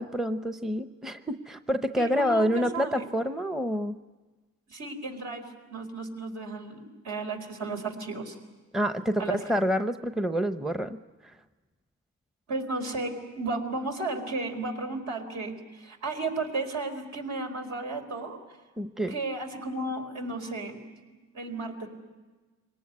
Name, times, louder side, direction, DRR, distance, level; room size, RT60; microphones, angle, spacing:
voice 1, 0.0-4.0 8.7-11.3 18.8-19.1, equal, ahead, 9 dB, 0.8 m, -28 dB
voice 2, 2.0-3.1 4.7-8.4 9.2-9.4 12.5-18.4 19.1-20.8 21.3-21.9, right 3 dB, 65° right, 4 dB, 4.5 m, -34 dB
24.0 x 18.5 x 9.6 m, 1.3 s
cardioid pair, 90°, 30 cm